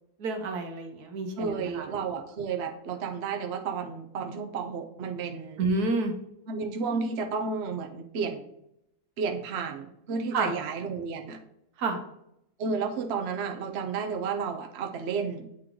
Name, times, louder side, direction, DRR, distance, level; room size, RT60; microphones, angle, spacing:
voice 1, 0.2-1.8 5.6-6.1 10.3-10.5 11.8-12.0, right 3 dB, 85° right, 4 dB, 1.5 m, -29 dB
voice 2, 1.4-5.6 6.5-8.4 9.2-11.4 12.6-15.5, right 5 dB, 55° right, 3 dB, 0.8 m, -32 dB
9.0 x 3.0 x 3.8 m, 0.79 s
omnidirectional pair, 1.6 m